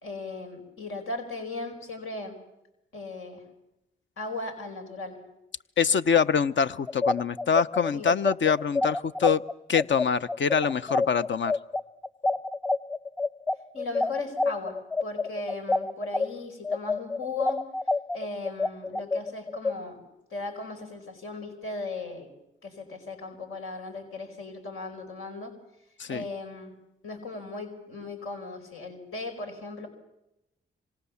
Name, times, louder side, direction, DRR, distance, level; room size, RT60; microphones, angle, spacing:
voice 1, 0.0-2.4 2.9-3.4 4.2-5.2 7.9-8.1 13.7-17.6 18.1-20.0 20.3-22.3 22.6-25.5 26.1-26.7 27.0-29.9, left 3 dB, 80° left, 4 dB, 4.8 m, -37 dB
voice 2, 5.8-9.4 9.7-11.5 26.0-26.3, left 6 dB, 60° left, 12 dB, 0.9 m, -24 dB
sound 1, 6.9-16.3 16.6-19.7, left 3 dB, 10° left, 1.0 m, -27 dB
26.0 x 25.5 x 7.2 m, 0.89 s
supercardioid pair, 50°, 21 cm